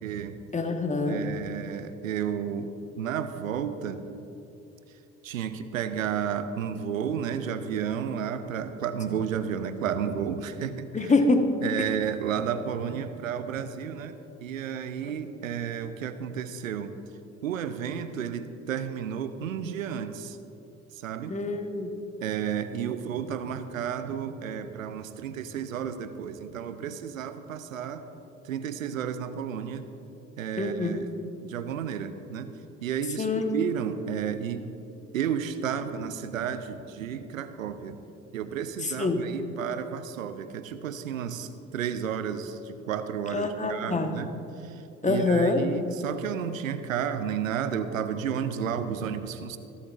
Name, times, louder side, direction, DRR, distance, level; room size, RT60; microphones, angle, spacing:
voice 1, 0.0-0.4 1.1-4.0 5.2-11.1 11.6-17.0 17.4-20.4 20.9-21.4 22.2-28.0 28.4-29.9 30.4-31.1 31.4-32.5 32.8-34.8 35.1-38.0 38.3-49.6, right 8 dB, 85° right, 11 dB, 0.7 m, -32 dB
voice 2, 0.5-1.2 10.9-11.5 21.3-21.9 30.6-31.0 33.2-33.5 39.0-39.2 43.3-44.1 45.0-45.6, left 3 dB, 20° left, 5 dB, 1.3 m, -25 dB
25.5 x 8.5 x 2.5 m, 2.8 s
figure-of-eight pair, 55°, 39 cm